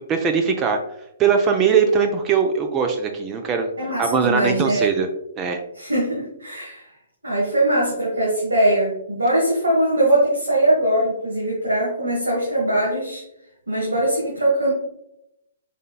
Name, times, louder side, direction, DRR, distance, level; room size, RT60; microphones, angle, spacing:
voice 1, 0.1-0.8 1.2-3.7 4.0-5.1 5.4-5.6, right 6 dB, 25° right, 4 dB, 0.5 m, -20 dB
voice 2, 3.8-4.9 5.7-6.8 7.2-13.2 13.7-14.7, right 1 dB, 85° right, -5 dB, 1.4 m, -21 dB
5.0 x 4.2 x 2.3 m, 0.81 s
figure-of-eight pair, 125°, 0 cm